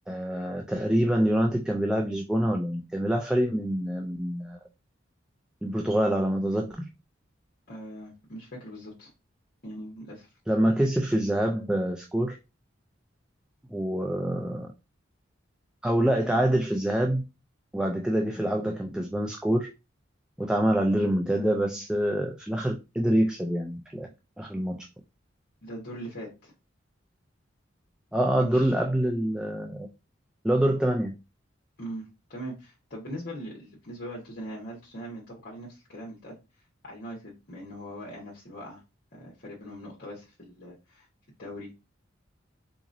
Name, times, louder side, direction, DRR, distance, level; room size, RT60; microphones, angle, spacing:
voice 1, 0.1-4.6 5.6-6.9 10.5-12.4 13.7-14.7 15.8-17.2 17.7-19.7 20.4-24.1 24.4-24.8 28.1-29.9 30.4-31.1, right 1 dB, 5° right, 0.3 m, -26 dB
voice 2, 7.7-9.1 9.6-10.3 25.6-26.5 28.4-28.7 31.8-36.4 36.8-38.8 39.1-41.1 41.4-41.7, equal, 55° left, 1.1 m, -41 dB
3.8 x 2.9 x 2.6 m
head